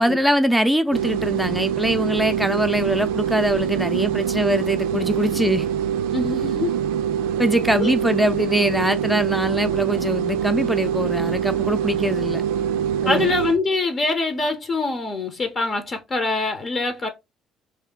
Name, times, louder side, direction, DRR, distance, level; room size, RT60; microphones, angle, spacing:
voice 1, 0.0-5.7 7.4-12.4 13.0-13.3, equal, 5° right, 0.7 m, -22 dB
sound 1, 0.9-13.6, right 9 dB, 75° right, 0.4 m, -24 dB
voice 2, 6.1-6.7 7.8-7.9 13.0-17.1, left 3 dB, 40° left, 0.9 m, -24 dB
3.2 x 2.8 x 3.6 m
hypercardioid pair, 55°, 0 cm